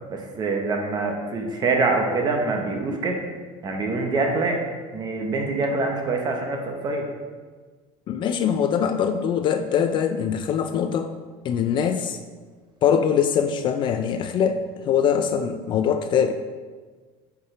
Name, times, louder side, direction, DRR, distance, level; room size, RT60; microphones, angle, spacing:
voice 1, 0.1-3.2 3.6-4.6 4.9-7.1, right 3 dB, 30° right, 2 dB, 1.1 m, -25 dB
voice 2, 8.1-11.1 11.4-12.2 12.8-14.6 14.9-16.3, left 8 dB, 40° left, 7 dB, 0.4 m, -22 dB
7.9 x 4.7 x 3.3 m, 1.4 s
cardioid pair, 140°, 13 cm